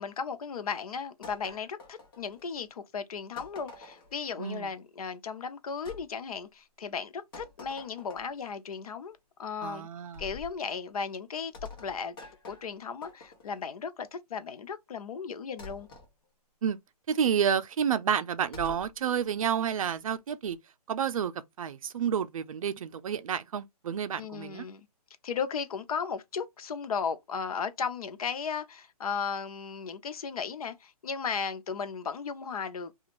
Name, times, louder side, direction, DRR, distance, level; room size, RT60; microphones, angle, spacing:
voice 1, 0.0-9.9 10.2-11.5 11.8-12.2 12.5-15.9 24.2-24.9 25.2-32.9, left 6 dB, 65° left, 0.6 m, -35 dB
sound 1, 1.2-2.6 3.4-4.2 5.8-6.0 7.3-8.4 10.1-10.6 11.5-13.6 15.6-16.1 18.5-18.9, left 3 dB, 35° left, 0.9 m, -47 dB
voice 2, 9.6-10.2 16.6-16.8 17.1-20.6 20.9-21.3 21.6-24.7, right 8 dB, 60° right, 0.5 m, -30 dB
2.5 x 2.3 x 2.9 m
hypercardioid pair, 165°, 20 cm